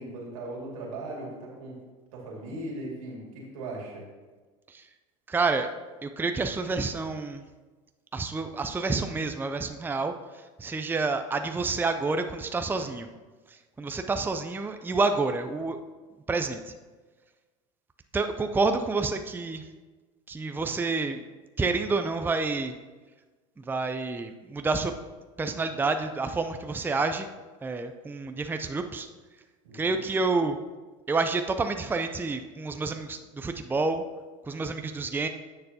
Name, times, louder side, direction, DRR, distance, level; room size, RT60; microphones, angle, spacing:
voice 1, 0.0-1.8 2.1-4.1 29.6-30.0, right 2 dB, 90° right, -2 dB, 2.3 m, -38 dB
voice 2, 5.3-5.7 6.0-7.4 8.1-10.1 10.6-13.1 13.8-15.8 16.3-16.6 18.1-19.6 20.3-21.2 21.6-22.7 23.7-24.9 25.4-27.3 27.6-29.1 29.7-30.6 31.1-34.0 34.5-35.3, right 3 dB, 10° right, 7 dB, 0.5 m, -28 dB
10.0 x 6.8 x 2.8 m, 1.3 s
supercardioid pair, 90°, 17 cm